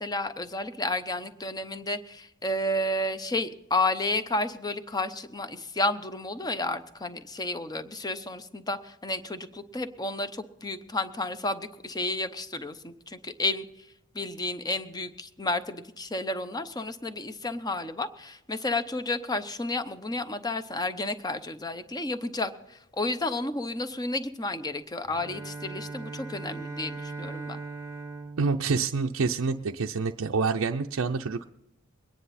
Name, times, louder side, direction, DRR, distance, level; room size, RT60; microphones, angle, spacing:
voice 1, 0.0-13.6 14.1-27.6, left 2 dB, 20° left, 11 dB, 0.7 m, -31 dB
Bowed string instrument, 25.1-29.7, right 3 dB, 15° right, 0.8 m, -40 dB
voice 2, 28.4-31.4, right 4 dB, 75° right, 3 dB, 0.5 m, -27 dB
22.5 x 9.7 x 4.1 m, 0.86 s
head